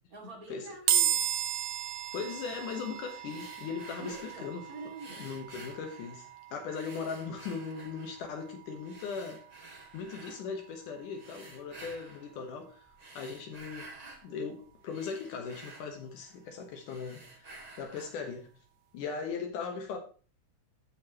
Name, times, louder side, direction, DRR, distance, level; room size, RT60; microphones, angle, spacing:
voice 1, 0.1-1.2 4.0-5.2, right 3 dB, 30° right, 2.6 m, -45 dB
sound 1, 0.9-14.2, right 10 dB, 65° right, 1.5 m, -37 dB
voice 2, 2.1-4.7 5.2-9.4 9.9-12.8 13.1-13.9 14.2-18.5 18.9-20.0, left 5 dB, 80° left, 2.8 m, -39 dB
sound 2, 3.2-4.5 5.0-6.4 6.7-8.3 8.8-10.4 11.1-12.3 12.9-14.3 14.6-16.5 16.8-18.3, right 2 dB, 15° right, 2.0 m, -51 dB
14.0 x 6.3 x 3.0 m
omnidirectional pair, 3.6 m